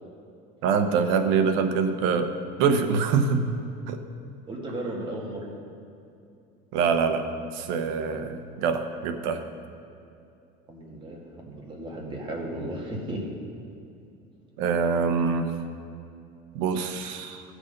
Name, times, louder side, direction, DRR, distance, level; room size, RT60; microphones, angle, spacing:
voice 1, 0.6-2.3 2.6-3.5 3.9-4.0 6.7-7.3 7.5-9.4 14.6-15.6 16.5-17.4, right 5 dB, 70° right, 7 dB, 1.0 m, -24 dB
voice 2, 4.5-5.5 10.7-13.2, right 1 dB, 25° right, -1 dB, 1.9 m, -35 dB
16.0 x 6.4 x 5.3 m, 2.6 s
cardioid pair, 160°, 21 cm